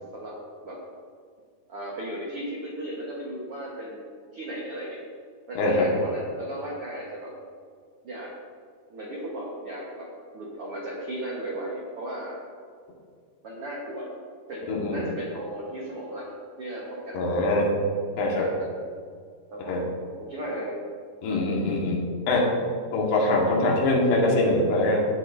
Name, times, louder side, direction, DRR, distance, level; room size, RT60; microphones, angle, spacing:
voice 1, 1.7-4.1 4.3-5.0 5.5-7.3 8.0-8.3 8.9-10.1 10.3-12.4 13.4-14.1 14.5-17.6 18.3-18.8 19.5-19.8 20.2-20.8 22.2-22.4, right 1 dB, 80° right, -4 dB, 1.3 m, -35 dB
voice 2, 5.6-5.9 14.7-15.0 17.1-17.7 18.2-18.5 19.7-19.8 21.2-22.5 22.9-25.1, left 2 dB, 80° left, -3 dB, 3.8 m, -23 dB
17.5 x 8.7 x 2.7 m, 2.1 s
omnidirectional pair, 4.8 m